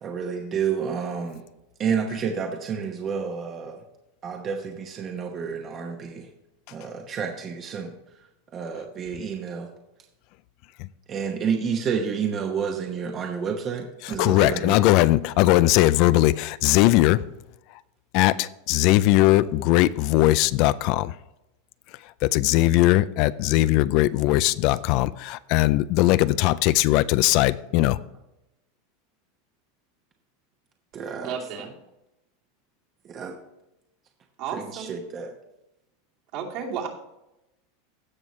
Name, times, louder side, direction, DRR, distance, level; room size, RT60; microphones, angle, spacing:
voice 1, 0.0-1.4 1.8-3.8 4.2-6.3 6.7-7.9 8.5-9.7 11.1-14.8 30.9-31.7 33.0-33.4 34.5-35.4, right 6 dB, 30° right, 3 dB, 1.0 m, -30 dB
voice 2, 14.2-17.2 18.1-21.1 22.2-28.0, left 16 dB, 50° left, 16 dB, 0.3 m, -19 dB
voice 3, 31.1-31.7 34.4-34.9 36.3-36.9, right 7 dB, 55° right, -2 dB, 2.6 m, -33 dB
16.5 x 6.3 x 3.1 m, 0.90 s
supercardioid pair, 145°, 0 cm